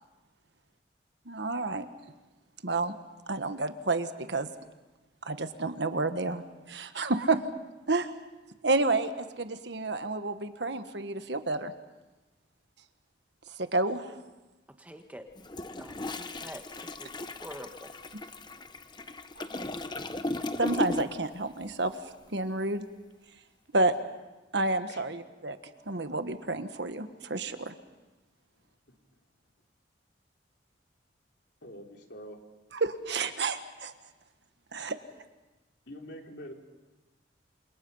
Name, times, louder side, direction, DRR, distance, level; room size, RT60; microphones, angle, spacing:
voice 1, 1.3-1.8 2.6-2.9 3.3-4.5 5.2-6.4 6.7-7.4 7.9-8.1 8.6-11.7 13.6-14.1 19.4-19.6 20.6-21.9 22.3-22.9 23.7-23.9 24.5-25.6 25.9-27.7 32.8-33.9 34.7-35.0, right 3 dB, 65° right, 9 dB, 1.4 m, -30 dB
voice 2, 14.8-15.2 15.8-17.1 17.4-17.9, equal, 10° right, 5 dB, 1.4 m, -46 dB
Toilet flush, 15.4-21.3 21.6-21.9, left 2 dB, 25° left, 0.9 m, -36 dB
voice 3, 31.6-32.4 35.9-36.5, equal, 60° left, 2 dB, 3.3 m, -45 dB
28.0 x 27.0 x 5.5 m, 1.1 s
head